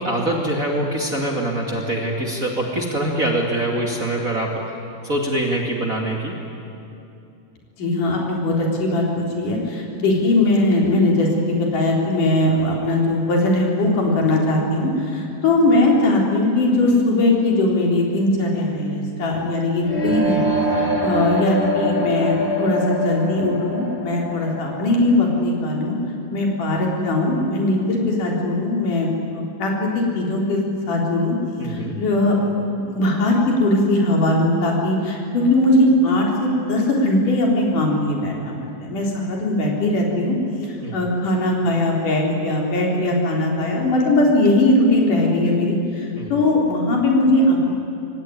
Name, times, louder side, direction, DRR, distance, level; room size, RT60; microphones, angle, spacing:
voice 1, 0.0-4.7 5.0-6.3 31.6-32.0 40.8-41.0 46.1-46.3, right 1 dB, 25° right, -1 dB, 2.4 m, -24 dB
voice 2, 7.8-20.4 20.7-26.0 26.3-30.6 30.9-31.4 31.6-38.5 38.8-40.4 40.6-47.7, left 1 dB, 70° left, -1 dB, 5.4 m, -20 dB
sound 1, 19.8-25.8, equal, 25° left, 1.9 m, -24 dB
25.5 x 23.0 x 9.8 m, 2.7 s
omnidirectional pair, 3.8 m